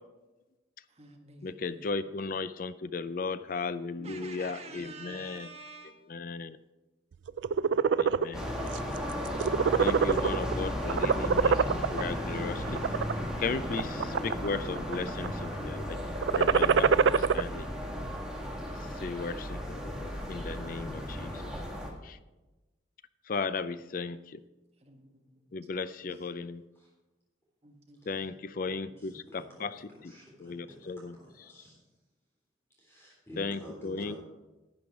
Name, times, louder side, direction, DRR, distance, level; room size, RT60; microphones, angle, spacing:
voice 1, 0.9-2.1 4.0-6.0 24.8-25.7 27.6-28.2 28.6-29.0, right 2 dB, 30° right, 1 dB, 1.6 m, -49 dB
voice 2, 1.4-5.5 5.8-6.6 8.0-8.5 9.8-12.8 13.4-16.0 16.3-17.7 18.8-21.4 22.0-22.2 23.3-24.4 25.5-26.6 28.1-30.1 30.4-31.2 33.4-34.1, left 4 dB, 45° left, 14 dB, 0.4 m, -36 dB
sound 1, 7.3-8.3 8.7-9.0 9.3-10.5 10.9-12.0 12.6-13.1 13.7-14.5 14.8-15.3 16.1-17.4, right 6 dB, 70° right, 0.3 m, -24 dB
sound 2, 8.3-21.9, equal, 5° right, 1.6 m, -35 dB
voice 3, 29.0-31.8 32.8-34.2, equal, 15° left, -4 dB, 3.5 m, -50 dB
11.5 x 8.8 x 4.8 m, 1.1 s
head